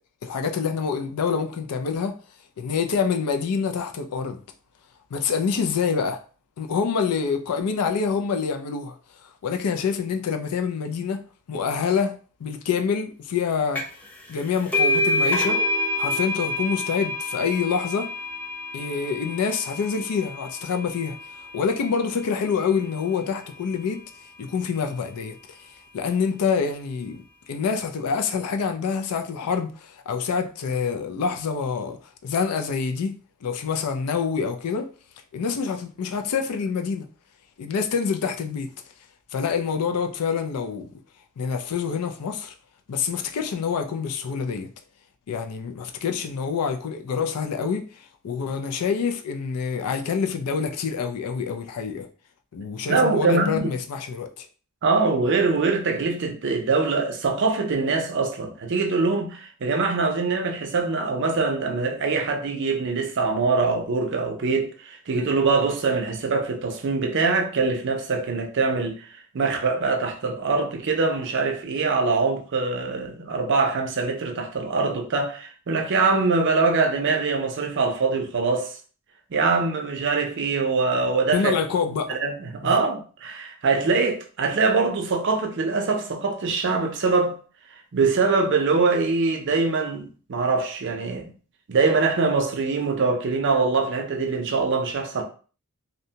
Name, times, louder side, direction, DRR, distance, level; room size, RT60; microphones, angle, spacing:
voice 1, 0.2-2.2 2.6-4.4 5.1-6.2 6.6-9.0 9.4-11.2 11.5-13.9 14.3-15.6 16.0-18.1 18.7-21.2 21.5-24.0 24.4-25.4 25.9-27.2 27.5-33.1 33.4-34.9 35.3-37.1 37.6-38.7 39.3-40.9 41.4-42.5 42.9-44.7 45.3-52.1 52.5-54.5 81.3-82.2 82.6-82.7, left 6 dB, 85° left, 0.4 m, -26 dB
sound 1, 13.8-14.1 14.3-21.6, left 2 dB, 5° left, 0.5 m, -27 dB
voice 2, 52.9-53.7 54.8-69.1 69.3-78.7 79.3-81.5 82.1-87.4 87.9-91.3 91.7-95.2, right 4 dB, 55° right, 0.5 m, -23 dB
2.6 x 2.2 x 2.7 m
head